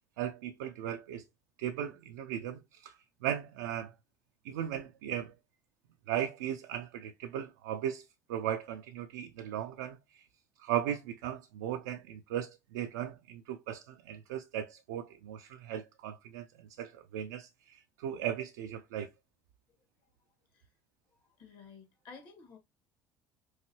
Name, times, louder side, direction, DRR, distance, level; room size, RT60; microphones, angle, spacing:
voice 1, 0.2-1.2 1.6-2.9 3.2-3.9 4.4-5.3 6.1-10.2 10.6-19.1, right 10 dB, 70° right, 0.3 m, -37 dB
voice 2, 21.2-22.6, left 5 dB, 55° left, 1.9 m, -53 dB
4.6 x 2.7 x 2.9 m
figure-of-eight pair, 55°, 9 cm